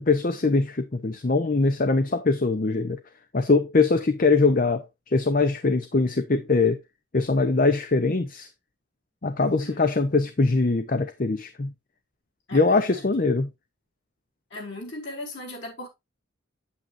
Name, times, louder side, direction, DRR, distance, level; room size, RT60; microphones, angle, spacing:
voice 1, 0.0-3.0 3.3-6.8 7.1-8.5 9.2-11.7 12.5-13.5, left 3 dB, 40° left, 0.7 m, -22 dB
voice 2, 9.4-9.9 12.5-13.3 14.5-15.9, left 1 dB, 60° left, 4.9 m, -38 dB
8.8 x 8.5 x 2.6 m
head